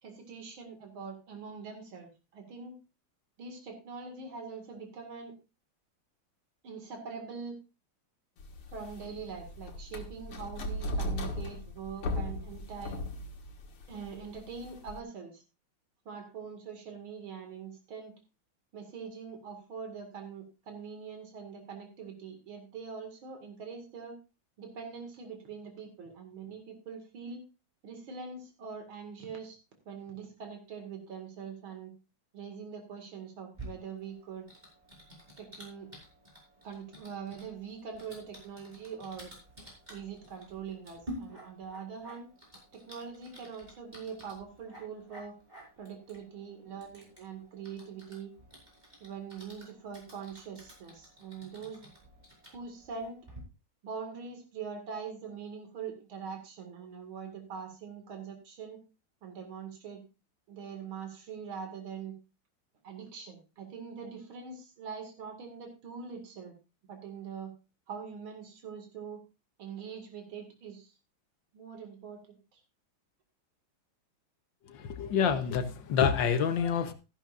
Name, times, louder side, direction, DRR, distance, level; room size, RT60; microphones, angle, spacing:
voice 1, 0.0-2.7 3.4-5.3 6.6-7.6 8.7-13.0 13.9-15.4 16.1-18.2 18.7-24.1 24.6-27.4 27.8-29.6 29.9-31.9 32.3-34.5 35.4-35.9 36.6-39.3 39.9-42.3 42.7-45.4 45.8-48.3 49.0-52.0 52.5-53.2 53.8-58.8 59.2-60.0 60.5-62.1 62.8-66.5 66.9-67.5 67.9-69.2 69.6-70.9 71.5-72.6, right 6 dB, 75° right, 2.9 m, -43 dB
sound 1, 8.4-15.0, left 1 dB, 85° left, 2.4 m, -37 dB
Typing, 33.5-53.4, right 1 dB, 20° right, 5.0 m, -51 dB
voice 2, 75.0-76.9, left 7 dB, 65° left, 1.6 m, -27 dB
13.5 x 11.5 x 2.5 m
omnidirectional pair, 2.3 m